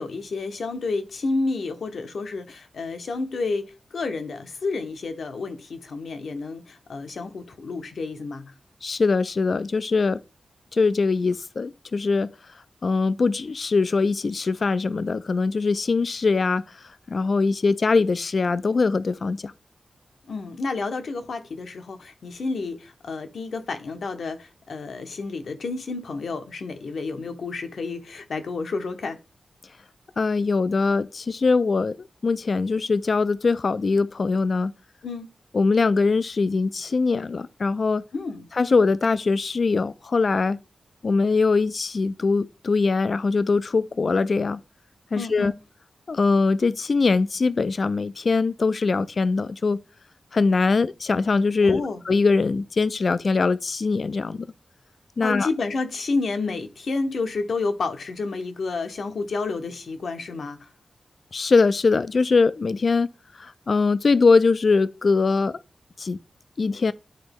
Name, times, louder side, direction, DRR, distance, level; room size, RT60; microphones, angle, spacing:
voice 1, 0.0-8.5 20.3-29.2 35.0-35.3 38.1-38.5 45.1-45.6 51.6-52.0 55.2-60.7, left 3 dB, 80° left, 1.0 m, -30 dB
voice 2, 8.8-10.2 10.7-12.3 12.8-16.6 17.1-19.5 30.2-32.0 32.2-34.7 35.5-38.0 38.5-40.6 41.0-44.6 45.1-45.5 46.1-49.8 50.3-54.5 55.2-55.5 61.3-63.1 63.4-65.6 66.0-66.2 66.6-66.9, left 4 dB, 55° left, 0.4 m, -22 dB
10.5 x 4.0 x 3.5 m
wide cardioid pair, 100°, 0 cm